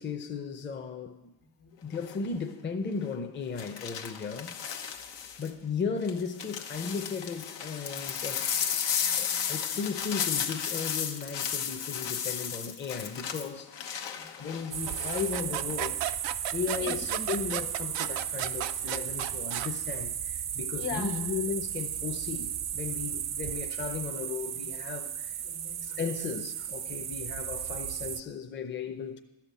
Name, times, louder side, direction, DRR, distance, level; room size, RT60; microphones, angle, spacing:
voice 1, 0.0-1.3 1.8-4.6 5.4-8.5 9.2-14.0 14.4-16.0 16.5-25.4 25.8-29.2, left 5 dB, 25° left, 0.7 m, -36 dB
voice 2, 1.4-1.8 2.3-2.4 5.5-5.6 8.5-9.8 14.1-14.6 15.2-15.3 16.8-17.2 20.7-21.3 22.9-23.0 23.5-23.6 24.5-24.7 25.0-25.1 25.4-26.3 26.8-27.0, left 6 dB, 70° left, 1.6 m, -43 dB
sound 1, 1.9-2.3 3.6-5.5 6.0-15.3 15.7-16.1, left 8 dB, 85° left, 1.1 m, -34 dB
sound 2, 14.7-28.2, right 9 dB, 40° right, 0.5 m, -35 dB
sound 3, 14.9-19.7, right 13 dB, 85° right, 0.6 m, -35 dB
12.5 x 5.9 x 8.3 m
cardioid pair, 85°, 42 cm